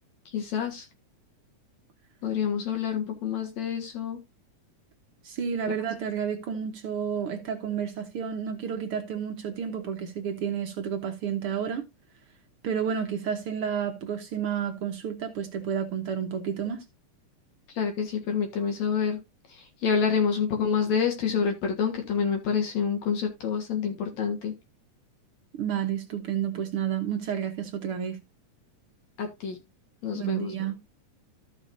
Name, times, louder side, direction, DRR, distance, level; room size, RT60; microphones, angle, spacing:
voice 1, 0.3-0.9 2.2-4.2 5.7-5.8 17.7-19.2 19.5-24.5 29.2-29.6 30.0-30.5, left 6 dB, 65° left, 2.7 m, -27 dB
voice 2, 5.2-11.9 12.6-16.8 25.6-28.2 30.1-30.8, right 8 dB, 60° right, 1.5 m, -31 dB
14.0 x 6.2 x 2.6 m
omnidirectional pair, 3.6 m